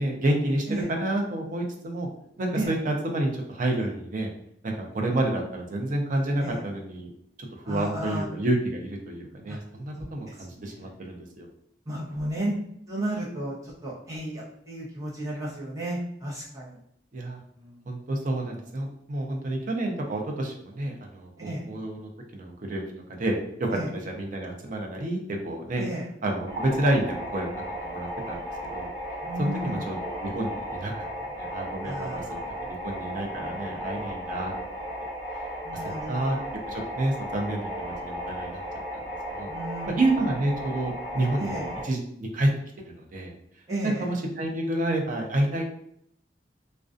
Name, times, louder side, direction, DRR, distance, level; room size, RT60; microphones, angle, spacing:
voice 1, 0.0-2.1 2.4-4.3 4.6-7.1 7.4-11.5 17.1-17.4 17.9-22.8 23.1-25.8 26.2-27.5 27.8-28.9 29.4-30.9 31.4-34.5 36.1-36.4 36.7-38.6 38.9-39.0 39.4-39.5 39.9-41.6 41.8-42.5 42.8-43.3 43.8-45.6, right 1 dB, 50° right, 1 dB, 0.5 m, -29 dB
voice 2, 7.6-8.3 9.5-9.6 10.3-10.9 11.8-12.6 12.9-16.8 17.5-17.8 21.4-21.6 23.7-23.9 25.8-26.1 29.2-29.8 31.8-32.7 35.6-36.4 39.5-40.0 41.4-41.7 43.7-44.1, right 1 dB, 20° right, -6 dB, 0.8 m, -33 dB
sound 1, 26.5-41.8, equal, 70° right, 1.2 m, -35 dB
2.4 x 2.2 x 2.5 m, 0.71 s
head